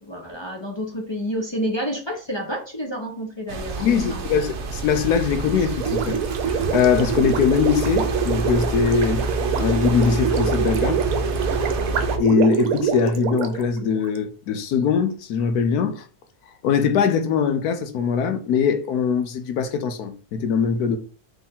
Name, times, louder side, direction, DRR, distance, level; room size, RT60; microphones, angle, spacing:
voice 1, 0.0-4.3, equal, 30° left, 0.5 m, -29 dB
sound 1, 3.5-12.2, right 2 dB, 55° right, 0.9 m, -28 dB
voice 2, 3.8-6.2 6.5-9.2 9.6-11.0 12.2-16.0 16.6-21.0, left 6 dB, 75° left, 1.1 m, -21 dB
Gurgling, 5.8-14.2, right 7 dB, 70° right, 1.1 m, -25 dB
4.2 x 3.4 x 3.7 m
omnidirectional pair, 1.6 m